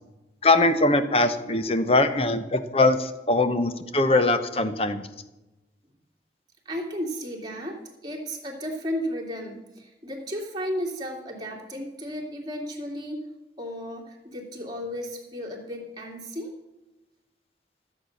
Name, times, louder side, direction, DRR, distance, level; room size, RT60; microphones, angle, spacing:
voice 1, 0.4-5.0, left 2 dB, 35° left, 10 dB, 0.8 m, -22 dB
voice 2, 6.6-13.2 13.6-16.5, equal, 25° right, -1 dB, 2.5 m, -34 dB
13.5 x 8.1 x 6.5 m, 1.0 s
head